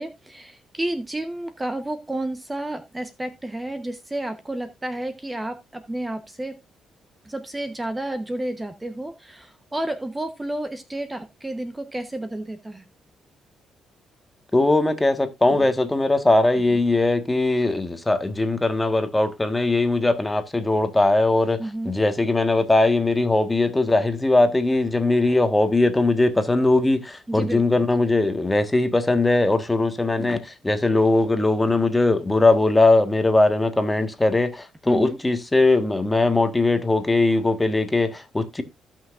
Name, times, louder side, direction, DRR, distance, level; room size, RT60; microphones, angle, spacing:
voice 1, 0.0-6.6 7.2-12.8 21.6-21.9 27.3-27.8 34.9-35.2, right 1 dB, 15° right, 1.0 m, -31 dB
voice 2, 14.5-21.6 21.8-38.6, left 2 dB, 15° left, 1.5 m, -20 dB
16.0 x 6.0 x 2.5 m
cardioid pair, 90°, 0 cm